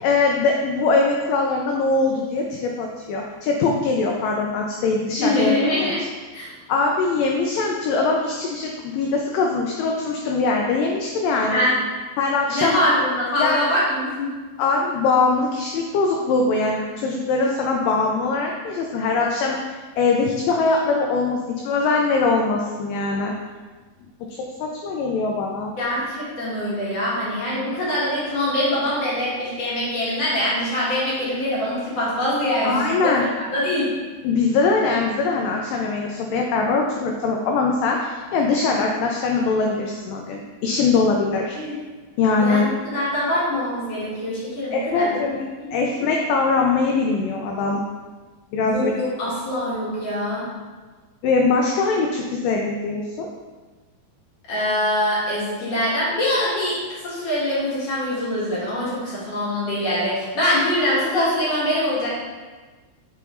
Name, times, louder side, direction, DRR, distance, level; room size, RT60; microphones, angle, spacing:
voice 1, 0.0-5.9 6.7-11.6 12.2-12.8 13.4-13.6 14.6-23.3 24.4-25.7 32.6-33.2 34.2-41.6 42.2-42.7 44.7-45.5 45.7-47.8 48.5-48.9 51.2-53.3, left 4 dB, 85° left, 1 dB, 1.9 m, -22 dB
voice 2, 5.2-6.0 6.3-6.5 11.5-11.8 12.5-14.3 25.8-33.9 41.5-41.7 42.4-45.7 48.6-50.5 54.5-62.1, left 1 dB, 55° left, -8 dB, 2.2 m, -23 dB
5.7 x 5.3 x 3.1 m, 1.3 s
omnidirectional pair, 4.4 m